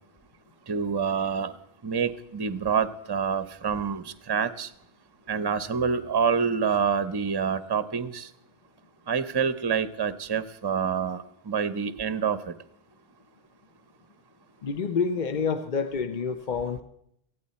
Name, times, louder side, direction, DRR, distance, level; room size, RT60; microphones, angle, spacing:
voice 1, 0.7-1.5 1.8-4.7 5.3-8.3 9.1-12.5, right 6 dB, 25° right, 0.7 m, -27 dB
voice 2, 14.6-16.8, left 5 dB, 50° left, 0.8 m, -28 dB
18.5 x 15.0 x 4.2 m
omnidirectional pair, 1.0 m